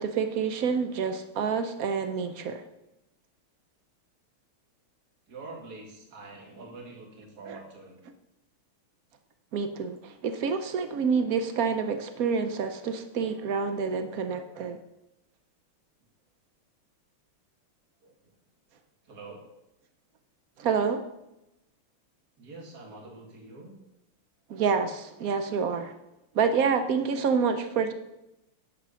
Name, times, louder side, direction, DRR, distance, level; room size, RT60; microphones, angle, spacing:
voice 1, 0.0-2.6 7.4-7.6 9.5-14.8 20.6-21.0 24.5-25.9 26.3-27.9, right 6 dB, 85° right, 8 dB, 0.7 m, -28 dB
voice 2, 5.3-8.0 18.0-18.1 19.0-19.5 22.4-23.8, right 3 dB, 45° right, 1 dB, 2.4 m, -45 dB
11.0 x 6.6 x 5.6 m, 0.90 s
omnidirectional pair, 2.4 m